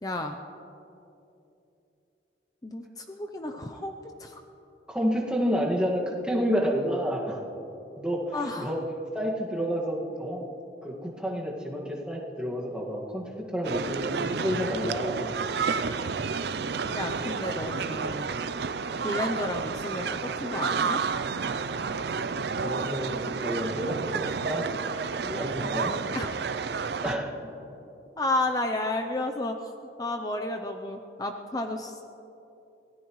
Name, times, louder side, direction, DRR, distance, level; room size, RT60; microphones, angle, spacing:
voice 1, 0.0-0.4 2.6-4.4 8.3-8.7 16.9-18.3 19.0-21.0 26.1-26.3 28.2-29.5 30.0-32.0, left 2 dB, 20° left, 4 dB, 0.6 m, -32 dB
voice 2, 4.9-7.4 8.0-8.8 9.1-10.4 10.8-15.4 22.6-24.6 25.2-26.0 27.0-27.8, equal, 5° right, -3 dB, 1.8 m, -30 dB
sound 1, 13.6-27.2, right 5 dB, 60° right, 0.5 m, -30 dB
24.5 x 17.0 x 3.2 m, 2.9 s
head